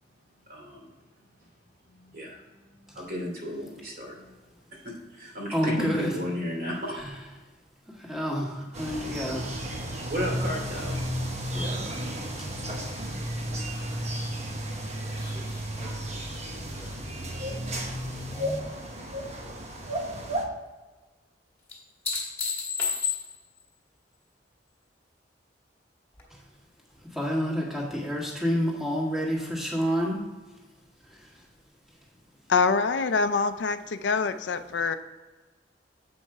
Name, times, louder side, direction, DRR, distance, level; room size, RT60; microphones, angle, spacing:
voice 1, 0.5-0.9 1.9-2.4 2.7-4.3 4.7-7.0 10.1-11.0, equal, 55° right, -2 dB, 2.6 m, -34 dB
voice 2, 5.5-6.1 7.0-7.1 8.0-9.6 11.5-12.0 12.4-12.5 27.1-30.2, equal, ahead, -4 dB, 1.7 m, -29 dB
sound 1, 8.7-20.4, right 1 dB, 40° right, 1.1 m, -33 dB
sound 2, 15.2-18.6 19.0-19.6 21.7-23.6 26.2-26.3, left 5 dB, 15° left, 2.0 m, -35 dB
voice 3, 32.5-34.9, left 4 dB, 80° left, 11 dB, 0.5 m, -25 dB
7.9 x 5.4 x 4.8 m, 1.2 s
head